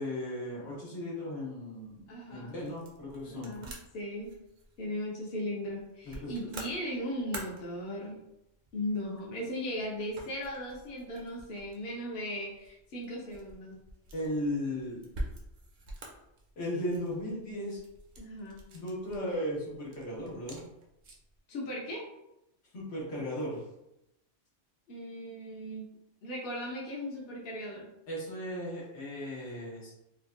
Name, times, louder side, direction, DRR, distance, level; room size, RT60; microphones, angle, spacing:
voice 1, 0.0-3.6 6.0-6.3 14.1-15.0 16.6-17.8 18.7-20.6 22.7-23.6 28.1-29.9, left 1 dB, 80° left, -5 dB, 1.3 m, -36 dB
sound 1, 2.0-21.4, right 1 dB, 55° right, 0.5 m, -48 dB
voice 2, 2.1-2.6 3.2-4.3 4.8-8.2 8.7-13.8 18.2-18.6 21.5-22.0 24.9-25.8 26.2-27.9, equal, 60° left, -3 dB, 0.8 m, -37 dB
3.3 x 2.1 x 2.4 m, 0.87 s
omnidirectional pair, 1.2 m